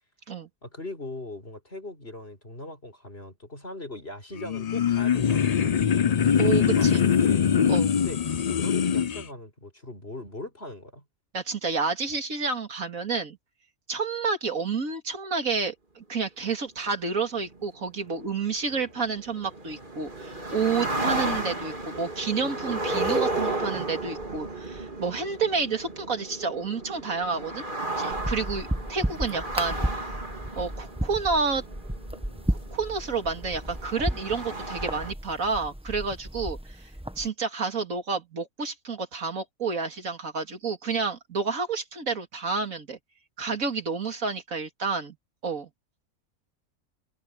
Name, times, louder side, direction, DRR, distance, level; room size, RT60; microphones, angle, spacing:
voice 1, 0.6-5.9 6.4-7.5 8.0-8.2 8.5-11.0, left 2 dB, 45° left, 7.0 m, -40 dB
sound 1, 4.4-9.2, left 7 dB, 65° left, 0.3 m, -22 dB
voice 2, 6.4-7.0 7.7-7.9 11.3-13.4 13.9-27.6 28.0-29.8 30.6-31.6 32.5-36.6 37.2-43.0 43.4-45.2 45.4-45.7, right 4 dB, 75° right, 2.9 m, -30 dB
sound 2, 17.4-35.1, right 2 dB, 35° right, 3.7 m, -34 dB
sound 3, 28.1-37.3, right 1 dB, 5° right, 1.1 m, -33 dB
omnidirectional pair, 1.4 m